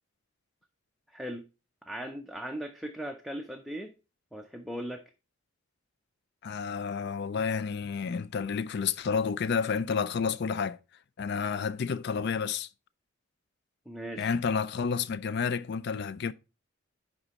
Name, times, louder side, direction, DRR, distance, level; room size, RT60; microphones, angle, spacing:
voice 1, 1.1-1.4 1.8-3.9 4.3-5.0 13.9-14.3, right 1 dB, ahead, 0.5 m, -38 dB
voice 2, 6.4-10.8 11.2-12.7 14.2-16.3, left 6 dB, 55° left, 0.4 m, -30 dB
10.0 x 3.6 x 4.1 m
head